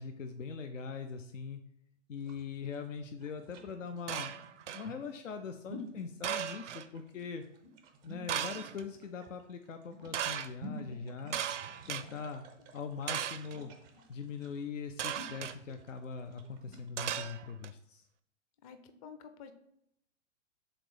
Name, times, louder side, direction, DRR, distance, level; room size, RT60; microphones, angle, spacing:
voice 1, 0.0-1.6 2.1-4.3 4.7-7.4 8.0-11.4 11.9-12.5 12.7-13.7 14.1-18.0, left 5 dB, 75° left, 7 dB, 0.6 m, -42 dB
sound 1, 2.1-16.9, right 2 dB, 10° right, 0.4 m, -52 dB
sound 2, 4.1-4.9 6.2-6.9 8.3-8.8 10.1-10.5 11.3-12.0 13.1-13.6 15.0-15.6 17.0-17.7, right 9 dB, 70° right, 0.6 m, -36 dB
voice 2, 18.6-19.5, left 6 dB, 30° left, 9 dB, 0.6 m, -50 dB
6.0 x 3.9 x 4.9 m, 0.76 s
figure-of-eight pair, 110°, 38 cm